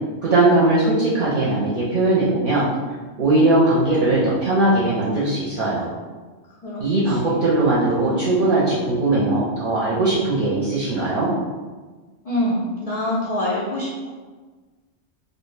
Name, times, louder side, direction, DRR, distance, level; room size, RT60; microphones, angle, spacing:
voice 1, 0.2-2.7 3.2-5.9 6.8-11.3, right 2 dB, 55° right, -8 dB, 0.6 m, -19 dB
voice 2, 6.6-7.5 12.2-14.1, left 1 dB, 65° left, -5 dB, 0.3 m, -26 dB
2.3 x 2.1 x 3.1 m, 1.4 s
omnidirectional pair, 1.2 m